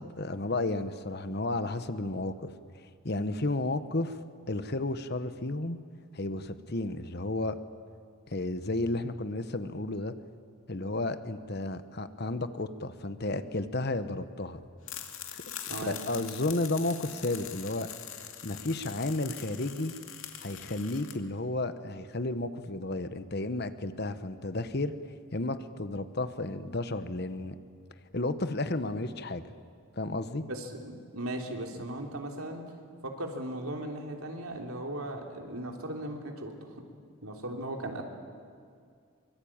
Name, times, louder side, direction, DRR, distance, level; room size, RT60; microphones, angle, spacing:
voice 1, 0.0-2.5 3.0-4.2 4.5-5.8 6.1-7.6 8.3-10.1 10.7-14.6 15.3-17.9 18.4-19.9 20.4-24.9 25.3-27.6 28.1-29.4 30.0-30.4, left 2 dB, 50° left, 11 dB, 1.1 m, -32 dB
sound 1, 14.8-21.1, left 10 dB, 70° left, 2.4 m, -43 dB
voice 2, 30.4-32.7 33.0-36.8 37.2-38.0, right 1 dB, 85° right, 2 dB, 3.5 m, -37 dB
24.0 x 23.5 x 8.8 m, 2.2 s
head